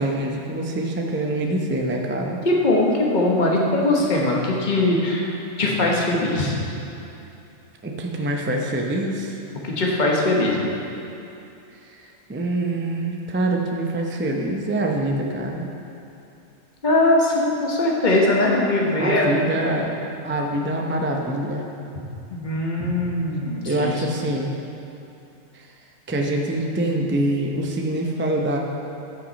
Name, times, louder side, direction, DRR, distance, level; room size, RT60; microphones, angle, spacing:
voice 1, 0.0-2.4 7.8-9.4 11.9-15.7 19.0-19.9 20.2-21.6 23.6-24.5 25.5-25.7 26.1-28.6, right 1 dB, 15° right, 1 dB, 0.4 m, -25 dB
voice 2, 2.4-6.6 9.6-10.7 16.8-19.8 22.3-24.2, left 2 dB, 35° left, -2 dB, 1.3 m, -21 dB
14.0 x 6.1 x 4.1 m, 2.8 s
omnidirectional pair, 1.5 m